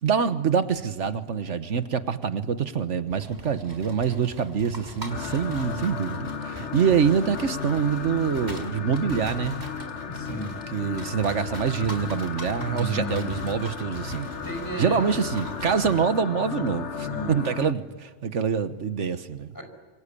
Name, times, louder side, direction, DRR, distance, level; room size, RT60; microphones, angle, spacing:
voice 1, 0.0-9.6 10.7-14.3 14.8-19.5, right 7 dB, 80° right, 11 dB, 1.4 m, -25 dB
sound 1, 3.1-16.1, right 1 dB, 35° right, 4.5 m, -41 dB
sound 2, 5.1-17.7, left 6 dB, 70° left, 1.3 m, -35 dB
voice 2, 10.1-10.6 12.6-13.2 14.4-15.1 17.1-17.4 19.5-19.6, right 1 dB, 15° left, 5 dB, 5.3 m, -33 dB
26.5 x 25.5 x 8.4 m, 1.5 s
omnidirectional pair, 1.2 m